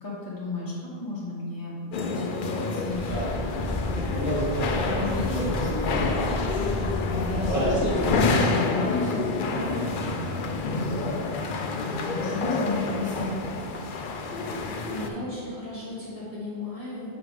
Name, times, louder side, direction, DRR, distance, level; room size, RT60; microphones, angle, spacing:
voice 1, 0.0-3.1 3.3-4.4 4.8-10.4 11.8-13.5, left 2 dB, 20° left, -7 dB, 1.3 m, -34 dB
sound 1, 1.9-15.1, left 3 dB, 60° left, 0.7 m, -29 dB
sound 2, 2.9-8.2, equal, 15° right, 1.4 m, -28 dB
voice 2, 14.9-17.2, left 2 dB, 35° left, -8 dB, 1.3 m, -36 dB
5.2 x 4.8 x 4.8 m, 2.1 s
omnidirectional pair, 1.0 m